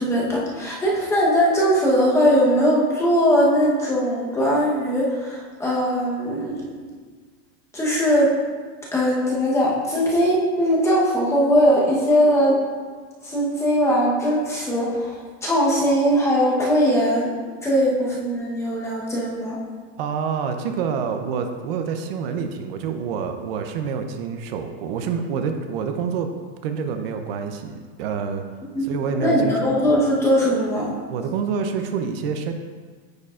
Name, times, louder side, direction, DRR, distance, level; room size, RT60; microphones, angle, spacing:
voice 1, 0.0-6.9 7.7-8.3 8.9-12.6 13.2-17.3 17.6-19.6 28.7-30.9, equal, 10° left, -5 dB, 1.0 m, -20 dB
voice 2, 20.0-26.3 26.6-28.4 28.8-30.0 31.1-32.5, right 6 dB, 65° right, 6 dB, 0.6 m, -27 dB
9.3 x 4.6 x 2.4 m, 1.5 s
supercardioid pair, 160°, 31 cm